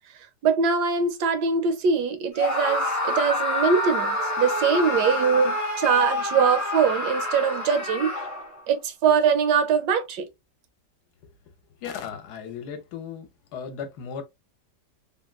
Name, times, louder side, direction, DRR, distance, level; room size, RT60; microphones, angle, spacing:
voice 1, 0.4-8.1 8.7-10.3, right 6 dB, 75° right, 1.2 m, -22 dB
Screaming, 2.3-8.6, left 1 dB, 20° left, 0.4 m, -27 dB
voice 2, 11.8-14.2, left 7 dB, 75° left, 1.1 m, -36 dB
3.5 x 2.1 x 2.2 m
omnidirectional pair, 1.8 m